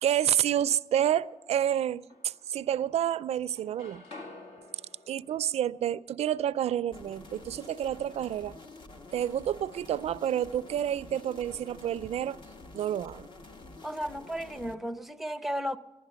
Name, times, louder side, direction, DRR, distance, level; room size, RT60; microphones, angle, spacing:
voice 1, 0.0-4.0 5.1-8.6 9.1-12.4 12.7-13.3, right 10 dB, 70° right, 0.4 m, -29 dB
sound 1, 0.7-1.5 2.1-3.1 3.4-7.3, left 2 dB, 65° left, 2.1 m, -52 dB
sound 2, 6.9-14.7, left 2 dB, 45° left, 1.2 m, -48 dB
voice 2, 13.8-15.8, equal, ahead, 0.6 m, -34 dB
15.5 x 11.5 x 6.9 m
cardioid pair, 105°, 11 cm